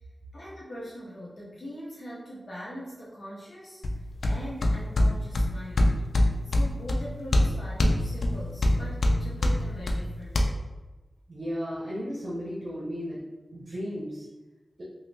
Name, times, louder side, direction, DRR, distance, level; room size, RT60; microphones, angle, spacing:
voice 1, 0.3-3.8 4.2-6.1 6.5-10.6, equal, 60° left, -6 dB, 0.7 m, -41 dB
sound 1, 3.8-10.4, left 1 dB, 80° left, 0.3 m, -25 dB
voice 2, 11.3-13.2 13.5-14.3, equal, 55° right, -6 dB, 0.7 m, -34 dB
2.9 x 2.2 x 3.3 m, 1.1 s
wide cardioid pair, 70°, 0 cm